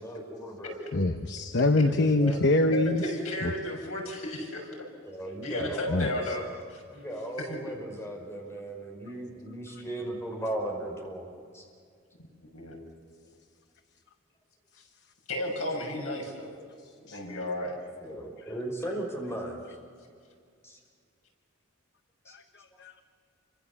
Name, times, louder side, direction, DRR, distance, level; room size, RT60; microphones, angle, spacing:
voice 1, 0.0-0.8 1.8-2.4 5.0-6.4 6.9-11.7 17.1-17.2 18.0-19.6 20.6-20.8 22.3-22.4, right 1 dB, 15° left, 1 dB, 5.5 m, -37 dB
voice 2, 0.9-3.0 3.4-3.5 5.9-6.1 17.1-17.2 22.3-23.0, left 2 dB, 55° left, 7 dB, 1.0 m, -25 dB
voice 3, 2.7-4.8 5.4-6.4 6.7-6.8 7.4-7.6 12.2-12.8 15.3-16.6 17.0-17.8, left 1 dB, 90° left, 1 dB, 6.8 m, -34 dB
29.0 x 25.0 x 7.2 m, 2.2 s
head